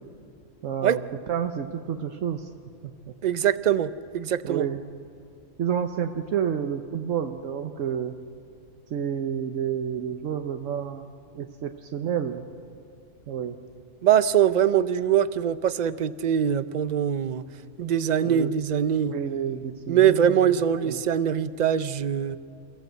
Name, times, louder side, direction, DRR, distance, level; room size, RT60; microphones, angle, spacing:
voice 1, 0.6-1.0 1.3-2.5 4.4-4.8 5.6-8.2 8.9-11.0 11.3-12.4 13.3-13.6 18.2-18.5 19.0-20.6 20.8-21.0, right 8 dB, 75° right, 6 dB, 1.2 m, -29 dB
voice 2, 3.2-4.7 14.0-17.4 17.8-19.1 19.9-22.4, right 9 dB, 45° right, 14 dB, 0.6 m, -23 dB
28.0 x 15.5 x 8.0 m, 2.5 s
omnidirectional pair, 1.3 m